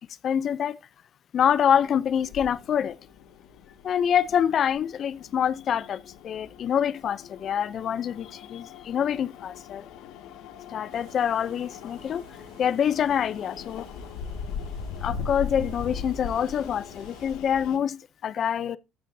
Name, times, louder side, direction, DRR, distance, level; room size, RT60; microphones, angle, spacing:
voice 1, 0.2-0.8 1.3-3.0 3.8-9.8 10.7-12.2 12.6-13.8 15.0-18.8, left 8 dB, 35° left, 0.5 m, -26 dB
sound 1, 1.4-17.8, left 6 dB, 60° left, 1.7 m, -40 dB
sound 2, 10.9-17.3, right 6 dB, 60° right, 2.6 m, -54 dB
14.0 x 9.3 x 2.7 m
cardioid pair, 170°, 0 cm